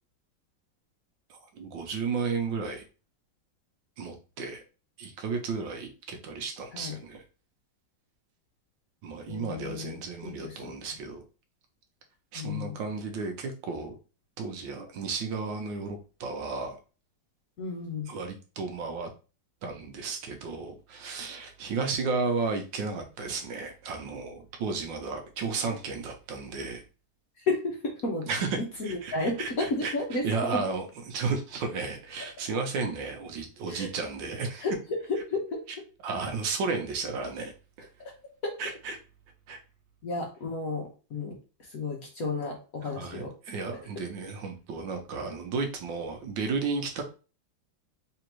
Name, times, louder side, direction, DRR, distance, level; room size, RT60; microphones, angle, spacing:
voice 1, 1.3-2.8 4.0-4.6 5.0-7.2 9.0-11.2 12.3-14.0 14.4-16.8 18.1-19.1 19.6-26.8 28.3-29.9 30.2-34.7 36.0-37.5 37.8-37.9 38.6-39.0 39.5-39.6 42.8-47.0, right 4 dB, 70° right, 5 dB, 1.3 m, -33 dB
voice 2, 6.7-7.0 9.3-10.7 12.3-12.8 17.6-18.1 27.4-28.3 28.6-30.6 33.7-33.9 34.6-35.6 38.0-38.1 38.4-38.5 40.0-43.3, left 3 dB, 55° left, 0 dB, 1.1 m, -32 dB
3.7 x 3.4 x 3.0 m, 0.34 s
omnidirectional pair, 2.3 m